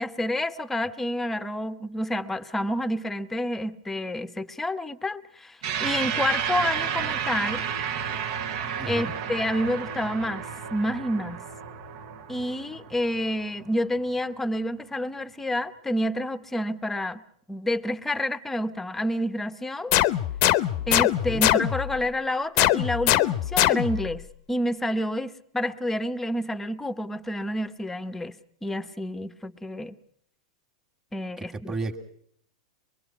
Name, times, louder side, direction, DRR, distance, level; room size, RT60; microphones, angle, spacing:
voice 1, 0.0-7.6 8.9-11.4 12.3-17.2 17.5-20.0 20.9-28.3 28.6-30.0 31.1-31.7, left 1 dB, 5° left, 11 dB, 0.9 m, -29 dB
sound 1, 5.6-14.3, right 8 dB, 55° right, 1.3 m, -32 dB
voice 2, 8.8-9.2 21.3-21.4 31.4-32.0, right 3 dB, 15° right, 2 dB, 1.8 m, -33 dB
sound 2, 19.9-22.0 22.6-24.1, left 14 dB, 50° left, 0.8 m, -22 dB
24.0 x 22.0 x 5.9 m, 0.66 s
hypercardioid pair, 135°, 4 cm